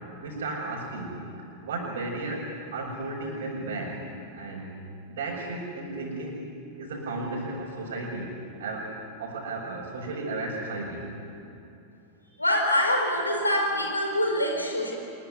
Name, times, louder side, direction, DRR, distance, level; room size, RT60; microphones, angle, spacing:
voice 1, 0.2-1.2 1.6-4.0 4.3-4.7 5.1-6.4 6.8-8.3 8.6-11.1, right 2 dB, 60° right, -6 dB, 5.8 m, -34 dB
voice 2, 12.4-14.9, left 1 dB, 85° left, 2 dB, 4.7 m, -25 dB
25.0 x 22.0 x 9.6 m, 2.8 s
figure-of-eight pair, 90°, 0 cm